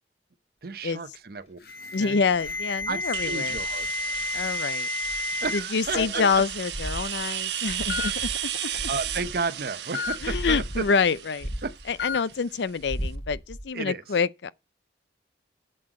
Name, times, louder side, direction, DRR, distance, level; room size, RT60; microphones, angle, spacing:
voice 1, 0.6-1.6 2.0-2.2 2.9-3.9 5.4-6.2 8.9-10.8 11.6-11.7 13.7-14.0, right 4 dB, 55° right, 0.7 m, -32 dB
Alarm, 1.6-5.6 5.9-6.3 7.2-7.3 7.9-8.1 9.9-10.2 12.0-12.2, left 3 dB, 60° left, 1.7 m, -31 dB
voice 2, 1.9-3.6 4.3-4.9 5.5-8.3 10.2-11.5 11.9-14.5, left 5 dB, 75° left, 0.5 m, -26 dB
sound 1, 2.3-4.6 5.0-9.6 10.0-12.3 12.7-13.7, equal, 40° left, 3.0 m, -37 dB
sound 2, 3.1-12.8, right 10 dB, 75° right, 1.1 m, -34 dB
7.7 x 7.7 x 4.8 m
head